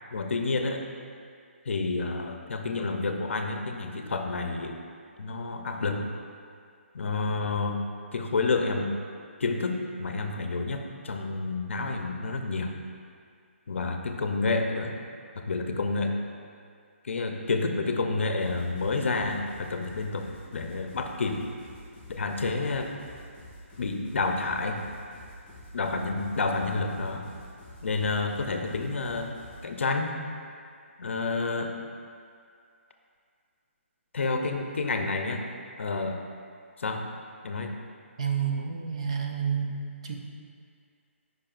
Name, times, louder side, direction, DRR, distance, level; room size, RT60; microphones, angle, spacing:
voice 1, 0.1-0.8 1.7-4.8 5.2-6.0 6.9-8.9 9.4-12.8 13.7-15.0 15.3-16.2 17.0-20.3 20.5-21.4 22.1-23.0 23.8-24.9 25.7-27.3 27.8-29.4 29.6-30.2 31.0-31.8 34.1-35.5 35.8-36.2 36.8-37.1 37.4-37.8, left 3 dB, 60° left, 4 dB, 0.6 m, -29 dB
sound 1, 18.4-29.7, equal, 15° left, 1.3 m, -48 dB
voice 2, 38.2-40.2, right 7 dB, 25° right, 1 dB, 0.4 m, -30 dB
8.7 x 5.4 x 2.5 m, 2.3 s
hypercardioid pair, 175°, 7 cm